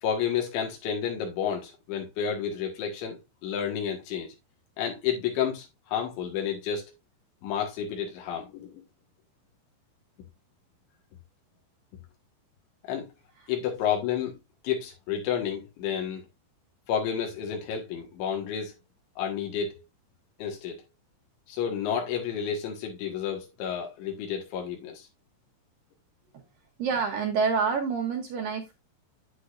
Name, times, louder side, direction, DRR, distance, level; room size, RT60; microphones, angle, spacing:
voice 1, 0.0-4.3 4.8-6.9 7.4-8.8 12.8-13.1 13.5-14.4 14.6-16.2 16.9-18.8 19.2-19.8 20.4-20.8 21.5-25.1, left 8 dB, 85° left, 3.8 m, -31 dB
voice 2, 26.8-28.7, right 5 dB, 70° right, 2.2 m, -27 dB
9.3 x 8.2 x 2.5 m
omnidirectional pair, 5.2 m